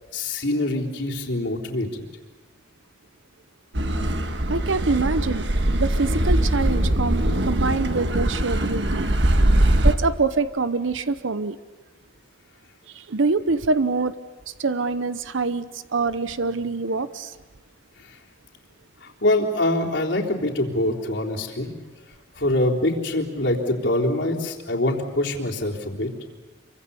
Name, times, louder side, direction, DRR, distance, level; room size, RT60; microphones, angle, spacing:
voice 1, 0.1-2.0 19.2-21.7 22.4-26.1, left 1 dB, 70° left, -1 dB, 3.7 m, -24 dB
Car passing by / Accelerating revving vroom, 3.7-9.9, right 1 dB, 65° right, 1.6 m, -21 dB
voice 2, 4.5-5.5 5.7-9.1 9.8-11.6 12.9-14.2 14.5-17.4, right 3 dB, 85° right, 13 dB, 0.9 m, -25 dB
27.5 x 24.5 x 7.0 m, 1.2 s
head